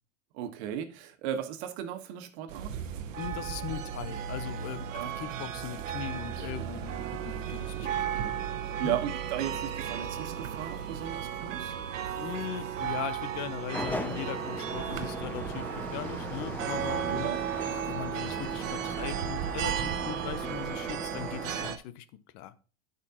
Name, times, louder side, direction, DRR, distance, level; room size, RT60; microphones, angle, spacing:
voice 1, 0.3-2.8 4.9-5.1 7.8-7.9 8.1-8.4 8.6-11.7 17.1-17.4, right 10 dB, 60° right, 1.5 m, -36 dB
sound 1, 2.5-21.8, right 9 dB, 80° right, 1.0 m, -35 dB
voice 2, 3.2-8.1 8.8-9.0 12.2-17.3 17.7-22.1 22.3-22.5, left 11 dB, 45° left, 0.9 m, -39 dB
sound 2, 13.7-21.7, left 2 dB, 5° left, 0.6 m, -40 dB
11.5 x 5.1 x 3.0 m
hypercardioid pair, 105°, 38 cm